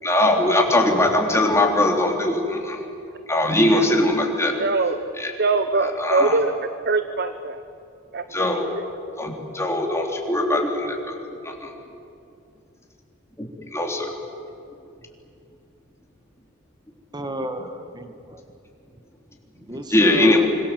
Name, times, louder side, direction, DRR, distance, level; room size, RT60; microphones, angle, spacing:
voice 1, 0.0-2.8 3.3-4.6 5.2-5.3 5.8-6.4 8.3-8.7 9.2-11.2 11.4-11.7 13.4-14.1 19.9-20.5, left 1 dB, 15° left, 0 dB, 3.6 m, -21 dB
voice 2, 4.6-5.0 5.4-6.5 6.8-7.6 8.1-8.2, right 3 dB, 50° right, 10 dB, 1.0 m, -22 dB
voice 3, 17.1-18.4 19.6-20.5, right 1 dB, 20° right, 7 dB, 1.8 m, -32 dB
26.0 x 26.0 x 7.8 m, 2.6 s
head